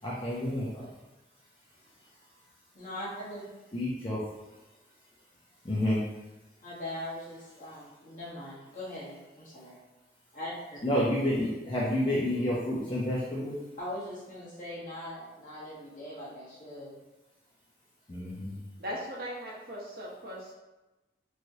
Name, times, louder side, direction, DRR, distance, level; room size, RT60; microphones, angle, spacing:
voice 1, 0.0-0.9 3.7-4.2 5.6-6.0 10.8-13.5 18.1-18.6, left 1 dB, 30° left, -7 dB, 0.5 m, -29 dB
voice 2, 2.7-3.4 6.6-9.8 10.3-10.8 13.8-16.9, left 1 dB, 45° left, -8 dB, 1.2 m, -41 dB
voice 3, 18.8-20.5, equal, 55° right, -4 dB, 0.8 m, -38 dB
3.2 x 2.9 x 2.6 m, 1.1 s
head